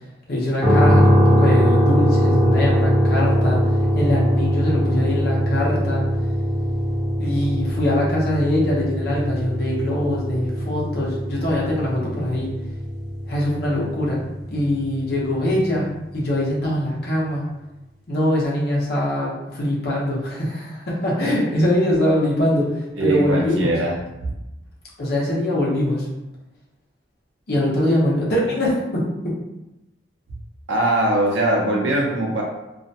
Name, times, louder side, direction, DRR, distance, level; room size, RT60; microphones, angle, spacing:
voice 1, 0.3-3.6 3.9-6.1 7.2-12.5 13.3-14.2 14.5-15.9 16.1-17.4 18.1-23.7 25.0-26.1 27.5-29.0, left 1 dB, 55° left, -5 dB, 0.7 m, -22 dB
sound 1, 0.6-14.6, equal, 15° left, 1.0 m, -21 dB
voice 2, 23.0-24.0 30.7-32.4, right 1 dB, 85° right, -2 dB, 0.6 m, -21 dB
2.4 x 2.2 x 2.7 m, 0.98 s
head